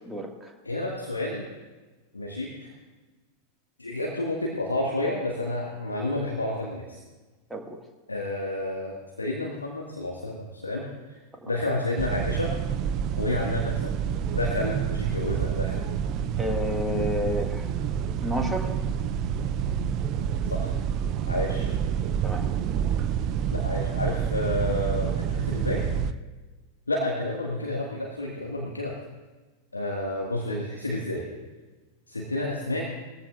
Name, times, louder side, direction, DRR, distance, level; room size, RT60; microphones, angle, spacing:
voice 1, 0.6-1.5 2.1-2.7 3.8-7.0 8.1-11.2 11.4-12.5 13.2-13.9 14.3-15.8 20.5-20.8 21.3-21.8 23.5-25.8 26.9-29.0 29.7-31.2 32.1-32.9, left 1 dB, 80° left, -2 dB, 1.7 m, -30 dB
sound 1, 12.0-26.1, right 8 dB, 40° right, 0.5 m, -28 dB
voice 2, 16.4-17.5 18.2-18.7 22.2-22.4, left 1 dB, 5° right, 1 dB, 1.8 m, -29 dB
21.0 x 14.5 x 2.4 m, 1.3 s
figure-of-eight pair, 90°, 0 cm